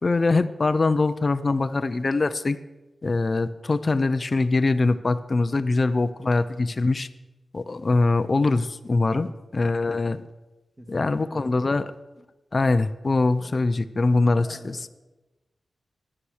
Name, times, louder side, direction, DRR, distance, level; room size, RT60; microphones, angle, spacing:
voice 1, 0.0-2.6 3.0-7.1 7.5-10.3 10.9-11.8 12.5-14.8, left 3 dB, 35° left, 11 dB, 0.5 m, -23 dB
voice 2, 10.8-11.7 13.4-13.6 14.3-14.9, right 1 dB, 20° right, -4 dB, 2.0 m, -46 dB
13.0 x 9.8 x 6.5 m, 1.1 s
wide cardioid pair, 145°, 0 cm